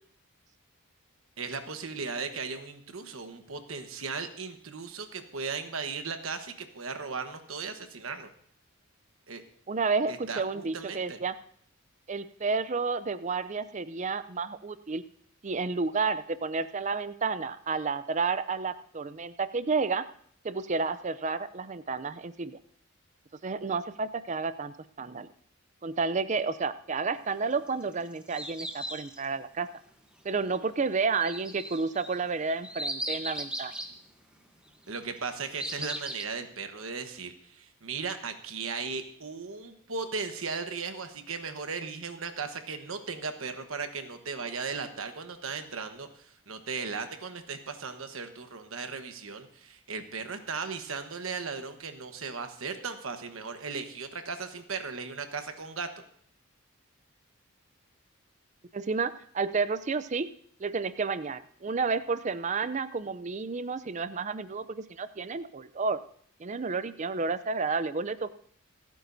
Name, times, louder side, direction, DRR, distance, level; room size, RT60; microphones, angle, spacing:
voice 1, 1.4-8.3 9.3-9.4 10.1-11.2 34.9-55.9, right 5 dB, 70° right, 7 dB, 1.2 m, -37 dB
voice 2, 9.7-11.4 12.1-15.0 15.4-20.0 20.4-22.6 23.4-25.3 25.8-29.7 30.2-33.7 58.7-60.3 60.6-66.0 66.4-68.3, right 4 dB, 35° right, 14 dB, 0.4 m, -31 dB
sound 1, 27.7-29.3 31.2-33.9 35.0-36.3, right 1 dB, 5° right, 1.0 m, -37 dB
27.5 x 9.1 x 2.7 m, 0.62 s
head